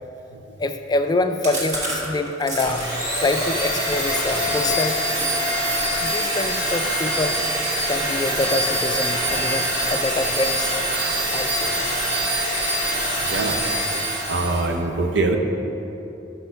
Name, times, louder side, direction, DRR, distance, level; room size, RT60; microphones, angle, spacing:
voice 1, 0.6-2.8 3.2-5.0 6.0-7.4 7.9-10.8 11.3-11.7, left 2 dB, 25° left, 7 dB, 0.3 m, -25 dB
Chewing mastication, 1.4-5.3 5.6-5.8 6.1-9.1 9.5-9.9 10.1-11.0 11.3-11.4 11.7-11.8 12.1-12.7, right 1 dB, 45° right, 1.5 m, -34 dB
Domestic sounds home sounds, 2.6-14.7, right 1 dB, 25° right, 1.7 m, -24 dB
voice 2, 14.3-15.4, right 3 dB, 75° right, 4 dB, 0.7 m, -23 dB
6.4 x 5.7 x 5.6 m, 2.9 s
head